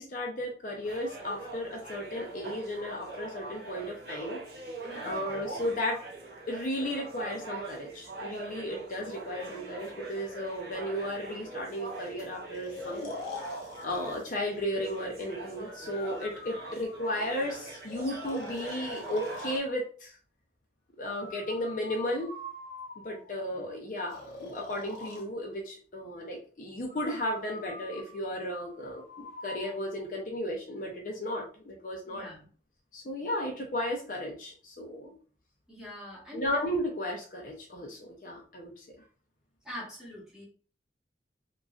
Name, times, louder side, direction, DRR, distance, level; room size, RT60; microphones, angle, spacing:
voice 1, 0.0-4.4 5.0-6.0 6.5-13.1 13.8-20.2 21.0-22.3 23.0-32.2 32.9-35.1 36.3-38.8, left 1 dB, 45° left, 0 dB, 0.6 m, -34 dB
sound 1, 0.8-19.6, right 3 dB, 60° right, 0.7 m, -42 dB
voice 2, 4.8-5.2 32.1-32.5 35.7-36.4 39.6-40.4, equal, 5° right, -5 dB, 1.0 m, -43 dB
Breathing, 12.5-14.3 15.7-17.3 17.9-19.7 21.0-23.3 24.1-25.3 26.9-29.7, left 3 dB, 85° left, 0.8 m, -45 dB
2.9 x 2.5 x 2.4 m, 0.41 s
head